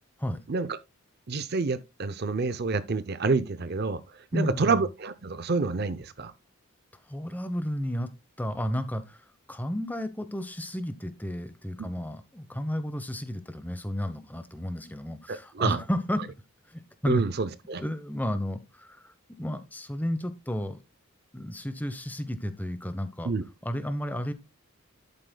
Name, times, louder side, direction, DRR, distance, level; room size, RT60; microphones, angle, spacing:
voice 1, 1.3-4.0 4.3-6.3 11.8-11.9 15.3-15.8 17.1-17.8 23.3-23.4, right 4 dB, 45° right, 0.6 m, -28 dB
voice 2, 4.3-4.9 7.1-8.1 8.4-16.2 16.7-17.2 17.8-19.1 19.4-20.8 21.3-23.3 23.6-24.3, equal, 10° left, 0.9 m, -32 dB
11.5 x 8.2 x 2.2 m
head